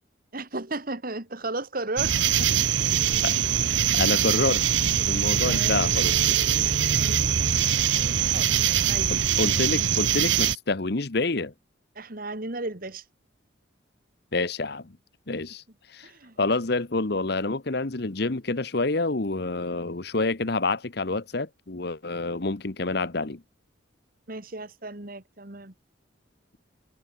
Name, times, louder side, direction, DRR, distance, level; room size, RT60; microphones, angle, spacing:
voice 1, 0.3-3.1 5.4-5.8 6.8-7.4 8.3-8.5 8.7-9.1 12.0-13.0 16.0-16.4 24.3-25.7, right 2 dB, 50° right, 2.0 m, -35 dB
sound 1, 2.0-10.6, right 9 dB, 70° right, 1.0 m, -23 dB
voice 2, 3.2-4.6 5.0-6.4 9.1-11.5 14.3-15.0 15.3-15.6 15.9-16.1 16.4-23.4, left 3 dB, 55° left, 1.1 m, -28 dB
head